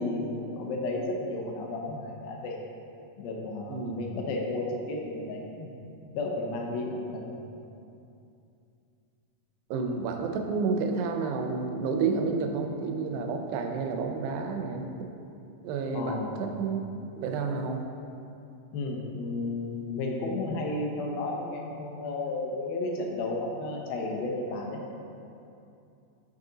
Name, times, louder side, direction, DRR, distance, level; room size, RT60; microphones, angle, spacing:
voice 1, 0.0-2.6 3.2-5.7 6.1-7.2 15.9-16.5 18.7-24.8, left 2 dB, 85° left, 0 dB, 2.6 m, -33 dB
voice 2, 3.7-4.1 9.7-15.1 15.6-16.8 17.2-17.9, right 4 dB, 90° right, 4 dB, 2.4 m, -30 dB
7.6 x 3.8 x 3.8 m, 2.6 s
omnidirectional pair, 4.2 m